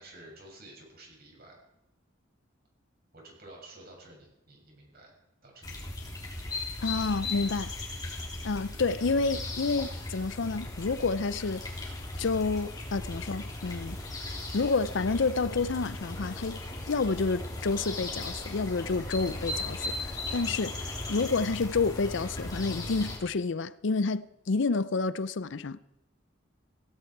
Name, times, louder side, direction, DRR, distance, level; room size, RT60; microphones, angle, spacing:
voice 1, 0.0-1.6 3.1-5.1 5.4-5.9, right 1 dB, 50° right, 6.7 m, -51 dB
sound 1, 5.6-23.2, left 2 dB, 20° left, 3.5 m, -37 dB
voice 2, 6.8-7.7 8.4-11.6 12.2-14.0 14.5-16.6 16.9-25.8, left 4 dB, 65° left, 0.6 m, -29 dB
17.0 x 16.5 x 4.6 m
head